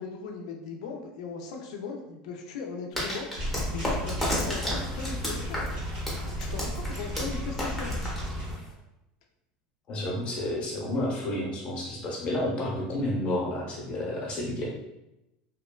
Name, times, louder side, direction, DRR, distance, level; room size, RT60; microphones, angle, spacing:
voice 1, 0.0-3.3 3.7-5.7 6.4-7.9, left 5 dB, 85° left, 2 dB, 0.5 m, -38 dB
sound 1, 2.9-8.7, left 1 dB, 5° left, 0.7 m, -33 dB
sound 2, 3.3-8.5, equal, 70° right, 1.4 m, -34 dB
voice 2, 9.9-14.7, left 1 dB, 35° left, -3 dB, 0.8 m, -30 dB
2.9 x 2.1 x 2.2 m, 0.91 s
supercardioid pair, 145°, 3 cm